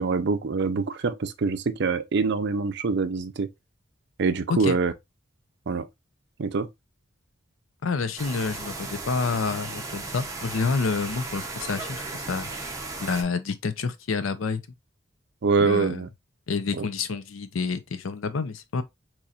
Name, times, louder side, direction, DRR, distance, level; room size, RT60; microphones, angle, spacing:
voice 1, 0.0-3.5 4.2-4.9 5.7-5.9 6.4-6.7 15.4-16.1 16.8-16.9, right 4 dB, 55° right, 0.5 m, -24 dB
voice 2, 7.8-12.7 13.0-14.6 15.6-16.0 16.5-18.8, left 4 dB, 75° left, 0.5 m, -28 dB
sound 1, 8.2-13.2, right 3 dB, 15° right, 0.7 m, -36 dB
4.2 x 3.0 x 2.4 m
head